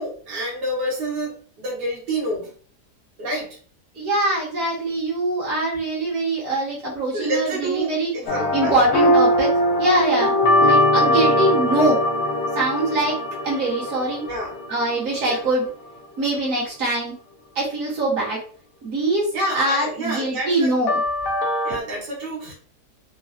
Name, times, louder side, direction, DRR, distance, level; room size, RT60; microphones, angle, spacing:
voice 1, 0.0-2.5 3.2-3.6 7.1-8.8 14.2-14.6 15.2-15.4 19.3-20.7 21.6-22.5, right 1 dB, 80° right, -4 dB, 1.8 m, -28 dB
voice 2, 3.9-8.1 8.5-9.5 9.8-12.0 12.5-13.2 13.4-14.2 14.7-15.7 16.2-17.2 17.5-18.4 18.8-21.0 21.7-21.8, right 2 dB, 55° right, -6 dB, 1.7 m, -23 dB
sound 1, 8.3-15.5 20.9-21.8, left 1 dB, 90° left, 1.3 m, -21 dB
3.7 x 2.0 x 2.6 m, 0.42 s
omnidirectional pair, 1.7 m